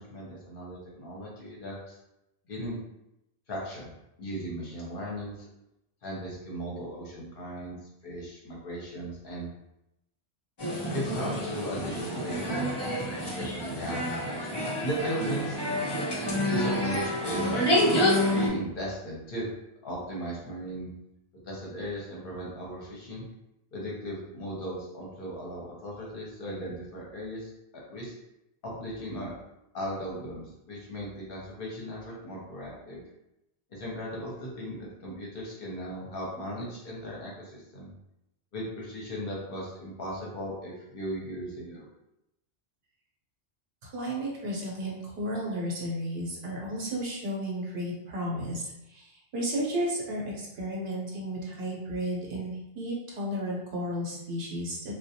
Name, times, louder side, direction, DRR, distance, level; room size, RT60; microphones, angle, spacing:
voice 1, 0.0-2.0 2.5-2.8 3.5-3.9 4.2-5.5 6.0-9.5 10.9-14.2 14.8-15.6 16.5-17.6 18.2-19.5 19.8-20.9 21.4-23.2 23.7-27.5 27.9-28.2 28.6-29.3 29.7-33.0 33.7-37.9 38.5-41.9, equal, 55° left, -4 dB, 0.8 m, -37 dB
sound 1, 10.6-18.5, equal, 35° left, 0.4 m, -28 dB
voice 2, 43.9-48.6 48.9-49.1 49.3-54.8, equal, 65° right, -4 dB, 0.9 m, -33 dB
2.4 x 2.2 x 2.7 m, 0.87 s
omnidirectional pair, 1.2 m